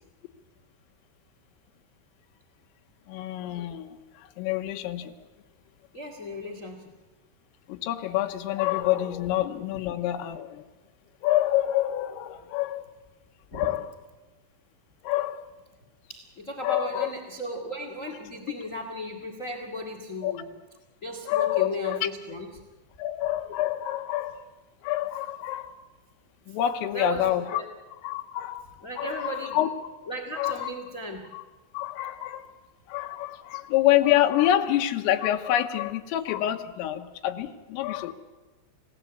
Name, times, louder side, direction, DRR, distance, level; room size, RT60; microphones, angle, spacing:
voice 1, 3.1-5.1 7.7-10.7 11.2-12.8 13.5-13.9 15.0-15.5 16.6-17.1 20.2-20.4 21.3-22.0 23.0-24.4 24.8-25.8 26.5-27.6 28.0-28.7 29.0-29.7 30.4-30.7 31.3-31.4 31.7-32.5 32.9-38.1, left 13 dB, 90° left, 7 dB, 3.8 m, -27 dB
voice 2, 5.9-6.9 13.5-13.7 16.1-20.5 21.0-22.5 26.5-26.6 26.9-27.7 28.8-29.6 30.1-31.2, equal, 55° left, 5 dB, 0.8 m, -36 dB
28.0 x 17.5 x 8.2 m, 1.2 s
omnidirectional pair, 5.8 m